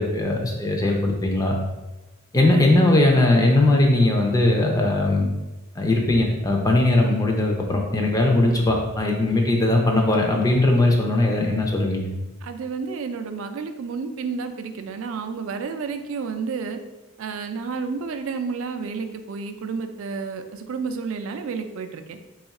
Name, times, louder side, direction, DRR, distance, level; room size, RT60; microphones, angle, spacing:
voice 1, 0.0-1.6 2.3-5.3 5.8-12.1, left 2 dB, 15° left, 1 dB, 0.4 m, -19 dB
voice 2, 2.4-2.7 9.3-9.4 12.4-16.8 17.2-22.2, right 5 dB, 65° right, 7 dB, 0.4 m, -31 dB
3.5 x 2.4 x 4.1 m, 1.1 s
head